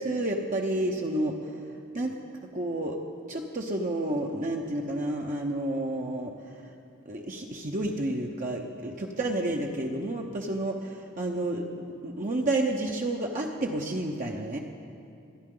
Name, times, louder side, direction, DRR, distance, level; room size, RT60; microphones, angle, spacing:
voice 1, 0.0-2.2 2.5-3.0 3.3-6.7 7.1-14.6, right 1 dB, 40° right, 0 dB, 0.8 m, -30 dB
28.5 x 11.0 x 3.8 m, 2.6 s
head